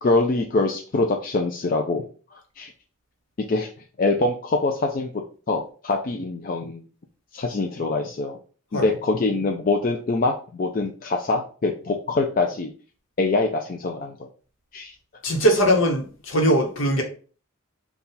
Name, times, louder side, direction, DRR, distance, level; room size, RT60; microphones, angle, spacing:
voice 1, 0.0-2.7 3.4-3.7 4.0-6.8 7.3-8.4 8.7-12.7 13.2-14.2 14.7-14.9, left 3 dB, 40° left, 0.4 m, -24 dB
voice 2, 15.2-17.0, equal, 75° left, 1.0 m, -20 dB
4.1 x 2.3 x 3.8 m
head